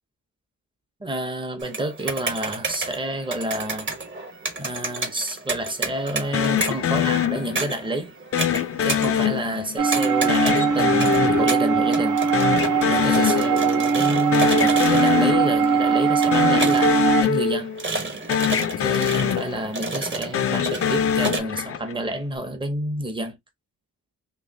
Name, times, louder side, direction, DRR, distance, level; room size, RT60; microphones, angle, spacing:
voice 1, 1.0-3.9 4.6-8.1 8.8-12.2 12.9-17.7 18.8-23.4, right 1 dB, 15° right, 0.8 m, -29 dB
sound 1, 1.6-21.4, right 2 dB, 35° right, 1.1 m, -32 dB
sound 2, 6.3-7.9 8.3-9.9 10.3-12.1 12.3-13.9 14.1-15.9 16.3-18.0 18.3-19.9 20.3-22.0, left 9 dB, 45° left, 0.4 m, -24 dB
sound 3, 9.8-17.2, right 5 dB, 65° right, 0.8 m, -20 dB
3.1 x 2.9 x 2.7 m
wide cardioid pair, 130°, 34 cm